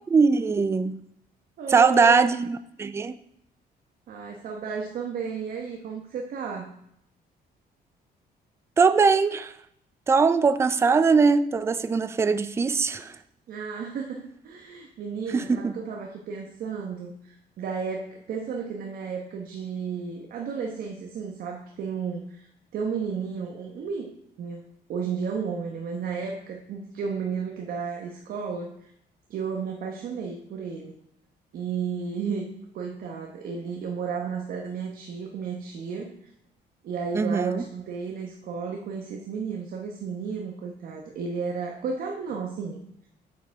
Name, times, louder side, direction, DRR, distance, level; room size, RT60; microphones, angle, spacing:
voice 1, 0.1-1.0 1.7-3.1 8.8-9.6 10.1-13.2 15.3-15.7 37.1-37.6, right 5 dB, 15° right, 13 dB, 0.3 m, -21 dB
voice 2, 1.6-2.4 4.1-6.7 13.5-24.1 24.4-24.6 24.9-28.9 29.3-31.0 31.5-36.3 36.8-42.8, right 5 dB, 60° right, 1 dB, 1.0 m, -33 dB
7.5 x 6.8 x 4.6 m, 0.73 s
cardioid pair, 145°, 17 cm